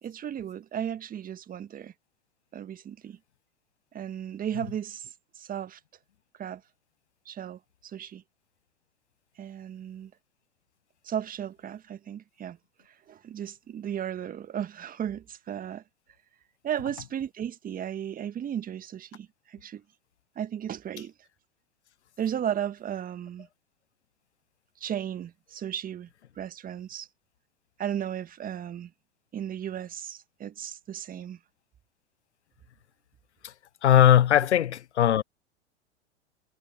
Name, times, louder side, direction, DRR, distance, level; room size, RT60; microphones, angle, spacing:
voice 1, 0.0-1.9 2.5-3.2 3.9-5.8 6.4-6.6 7.2-8.2 9.4-10.1 11.0-12.6 12.9-15.8 16.6-19.8 20.3-21.1 22.2-23.5 24.8-26.1 26.3-27.1 27.8-28.9 29.3-31.4, right 9 dB, 25° right, 1.7 m, -35 dB
voice 2, 33.8-35.2, left 11 dB, 75° left, 0.8 m, -19 dB
figure-of-eight pair, 95°, 34 cm